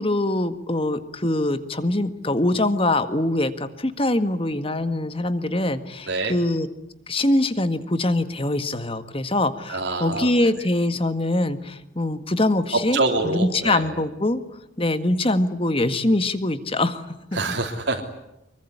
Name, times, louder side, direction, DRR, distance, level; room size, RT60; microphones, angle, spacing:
voice 1, 0.0-6.7 7.1-14.4 14.8-17.4, left 1 dB, 30° left, 10 dB, 1.7 m, -23 dB
voice 2, 9.7-10.5 12.9-13.9 17.3-18.0, right 3 dB, 70° right, 1 dB, 3.4 m, -26 dB
25.0 x 23.5 x 9.9 m, 0.86 s
head